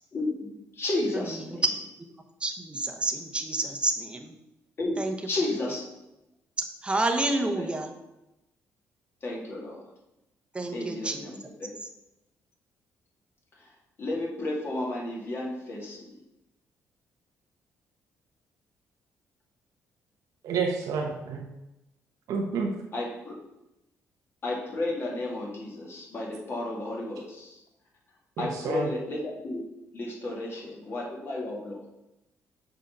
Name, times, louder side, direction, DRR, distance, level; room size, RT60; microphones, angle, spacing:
voice 1, 0.1-1.6 4.8-5.8 7.4-7.7 9.2-9.8 10.7-11.7 14.0-16.0 22.9-23.3 24.4-27.6 28.4-29.6 29.9-31.8, left 2 dB, 45° left, -2 dB, 2.2 m, -32 dB
voice 2, 1.1-1.6 2.4-4.3 5.0-5.2 6.8-7.9 10.5-11.3 11.8-11.9, right 2 dB, 20° right, 5 dB, 1.0 m, -29 dB
voice 3, 20.4-21.4 22.3-22.7 28.4-28.9 30.2-30.3, right 4 dB, 80° right, 1 dB, 0.9 m, -29 dB
6.4 x 4.1 x 5.4 m, 0.93 s
cardioid pair, 90°, 6 cm